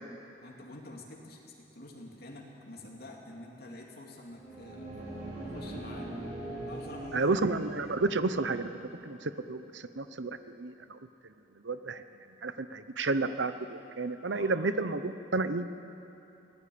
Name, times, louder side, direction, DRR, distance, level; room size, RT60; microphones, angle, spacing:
voice 1, 0.4-4.9 5.5-6.1 6.6-7.3 14.3-14.6, left 1 dB, 60° left, -1 dB, 2.7 m, -47 dB
sound 1, 4.2-8.9, right 1 dB, 40° right, 6.1 m, -42 dB
voice 2, 7.1-8.7 9.0-10.3 10.6-11.0 11.6-12.0 12.4-15.6, right 3 dB, 85° right, 11 dB, 0.9 m, -31 dB
23.5 x 17.5 x 8.6 m, 2.8 s
head